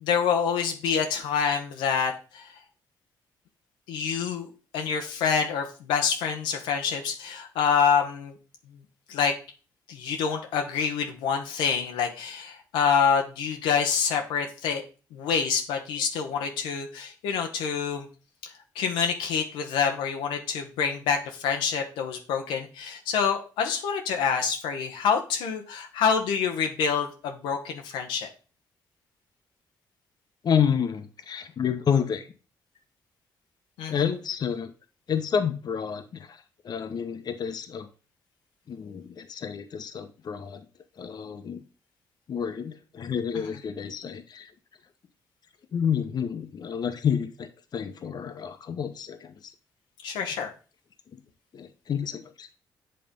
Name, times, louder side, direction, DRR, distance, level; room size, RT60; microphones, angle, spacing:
voice 1, 0.0-2.5 3.9-8.3 9.1-9.3 9.9-14.8 15.1-18.1 18.4-28.3 33.8-33.9 50.0-50.5, left 6 dB, 90° left, 3 dB, 0.8 m, -27 dB
voice 2, 30.4-32.3 33.9-34.7 35.1-37.9 38.7-40.6 41.0-41.6 42.3-44.5 45.7-49.3 51.1-51.2 51.5-52.5, left 7 dB, 55° left, 8 dB, 0.9 m, -29 dB
7.7 x 3.3 x 5.2 m, 0.35 s
supercardioid pair, 60°, 8 cm